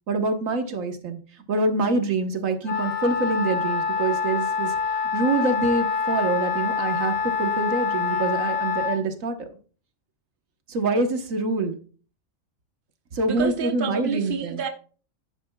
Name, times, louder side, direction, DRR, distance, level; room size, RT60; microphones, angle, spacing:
voice 1, 0.1-1.2 1.5-4.7 5.1-9.5 10.7-11.7 13.1-14.6, right 2 dB, 85° right, 1.6 m, -25 dB
Wind instrument woodwind instrument, 2.6-9.0, left 6 dB, 85° left, 1.6 m, -26 dB
voice 2, 13.2-14.7, right 7 dB, 45° right, 1.2 m, -29 dB
10.5 x 10.0 x 2.3 m
omnidirectional pair, 1.3 m